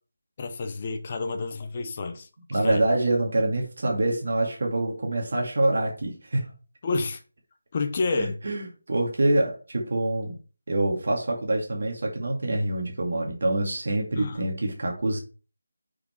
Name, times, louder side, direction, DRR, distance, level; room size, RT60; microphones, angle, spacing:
voice 1, 0.4-2.8 6.8-7.2 7.7-8.4 14.1-14.4, left 3 dB, 25° left, 0.8 m, -29 dB
voice 2, 2.5-6.5 8.1-10.3 10.7-15.2, right 1 dB, 50° right, 2.2 m, -26 dB
6.4 x 6.0 x 4.5 m
figure-of-eight pair, 175°, 0 cm